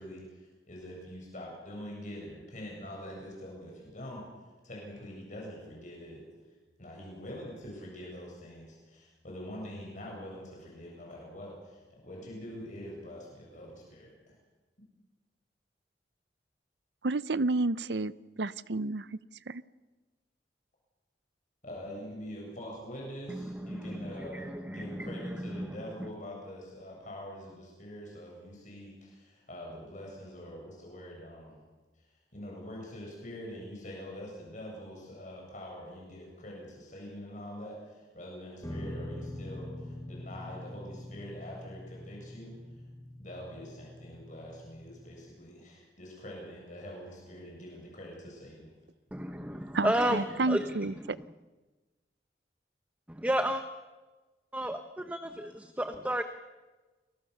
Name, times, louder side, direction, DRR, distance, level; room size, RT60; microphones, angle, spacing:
voice 1, 0.0-4.2 4.6-6.3 6.8-14.3 21.6-31.6 32.3-42.6 43.2-48.7, equal, 45° left, -2 dB, 7.8 m, -44 dB
voice 2, 17.0-18.1 18.4-19.1 19.5-19.6 49.7-51.2, right 2 dB, 75° right, 17 dB, 0.7 m, -30 dB
voice 3, 23.3-25.8 49.1-50.8 53.2-53.6 54.5-56.2, right 1 dB, 10° right, 8 dB, 1.0 m, -32 dB
sound 1, 38.6-45.2, left 1 dB, 15° left, 2.2 m, -44 dB
29.5 x 22.5 x 7.0 m, 1.2 s
head